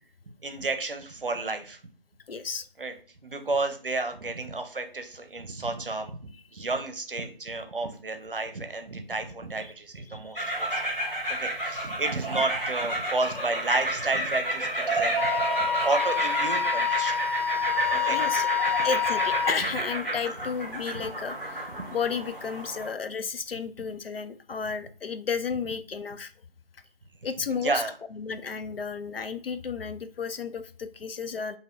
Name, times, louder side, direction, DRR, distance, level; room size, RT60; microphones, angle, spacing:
voice 1, 0.4-1.8 2.8-2.9 3.2-10.9 11.3-17.2 17.9-18.2 18.6-18.7 27.5-27.9, right 3 dB, 60° right, 7 dB, 0.7 m, -31 dB
voice 2, 2.3-2.7 9.6-9.7 10.1-10.6 11.0-11.4 15.6-15.7 18.1-18.5 18.8-26.3 27.2-27.8 28.1-31.6, left 5 dB, 70° left, 10 dB, 0.5 m, -33 dB
sound 1, 10.3-22.9, right 1 dB, 5° right, 1.0 m, -30 dB
Wind instrument woodwind instrument, 15.1-19.6, left 8 dB, 25° left, 1.0 m, -27 dB
4.7 x 2.7 x 2.5 m, 0.41 s
figure-of-eight pair, 165°, 30 cm